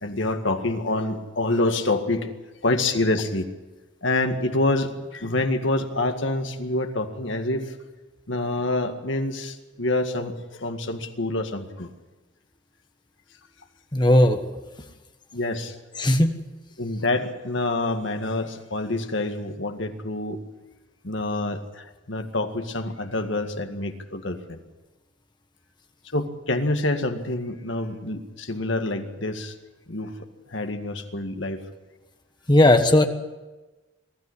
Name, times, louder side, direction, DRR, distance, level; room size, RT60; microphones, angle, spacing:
voice 1, 0.0-2.3 2.6-3.5 4.0-7.7 8.3-11.9 15.3-15.7 16.8-20.4 21.0-24.6 26.1-29.5 29.9-30.1 30.5-31.6, left 2 dB, 70° left, 6 dB, 1.9 m, -27 dB
voice 2, 13.9-14.4 16.0-16.3 32.5-33.1, left 1 dB, 20° left, 7 dB, 1.4 m, -16 dB
22.5 x 13.5 x 9.8 m, 1.2 s
head